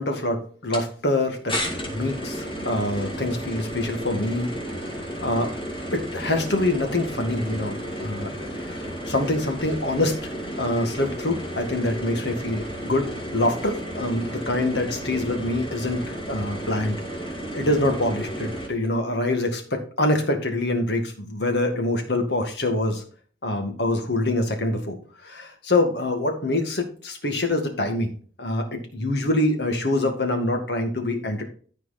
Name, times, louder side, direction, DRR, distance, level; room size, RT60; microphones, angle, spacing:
voice 1, 0.0-1.5 1.8-4.5 4.8-5.5 5.9-8.3 8.6-10.2 10.6-17.0 17.5-23.0 23.4-25.0 25.2-28.1 28.4-31.4, left 1 dB, 65° left, 4 dB, 2.0 m, -25 dB
sound 1, 0.7-0.9 1.5-18.7, equal, 30° left, 2.6 m, -33 dB
13.5 x 4.6 x 4.2 m, 0.44 s
head